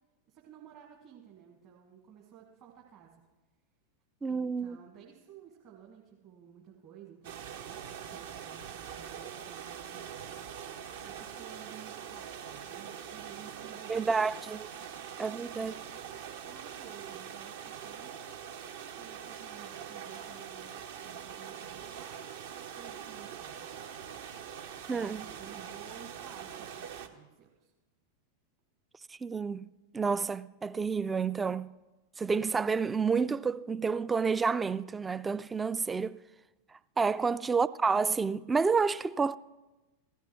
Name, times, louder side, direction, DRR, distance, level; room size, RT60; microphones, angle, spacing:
voice 1, 0.3-3.2 4.3-10.5 11.0-14.4 14.8-15.8 16.4-18.2 19.0-22.5 22.7-23.8 24.9-27.7, right 9 dB, 40° right, 1.7 m, -54 dB
voice 2, 4.2-4.8 13.9-14.7 15.2-15.7 24.9-25.3 29.1-31.7 32.2-36.2 37.0-39.4, right 5 dB, 15° right, 0.3 m, -29 dB
sound 1, 7.2-27.1, right 8 dB, 55° right, 0.8 m, -43 dB
16.5 x 14.0 x 3.1 m
figure-of-eight pair, 90°, 0 cm